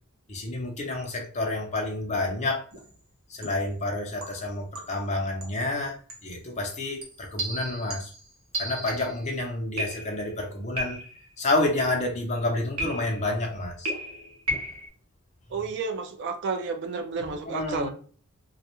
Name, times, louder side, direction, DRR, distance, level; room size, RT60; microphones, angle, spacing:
voice 1, 0.3-2.6 3.3-6.0 6.2-8.1 8.6-11.0 11.4-13.9 17.5-17.9, left 2 dB, 35° left, 0.6 m, -29 dB
sound 1, 2.7-3.0 3.4-3.7 4.2-5.1 5.4-5.7 6.1-6.3 7.0-9.3 9.8-10.3 10.8-11.3 12.8-13.4 13.9-14.9, right 1 dB, 70° right, 0.9 m, -35 dB
voice 2, 15.5-17.9, right 4 dB, 55° right, 0.4 m, -31 dB
2.3 x 2.1 x 2.9 m
head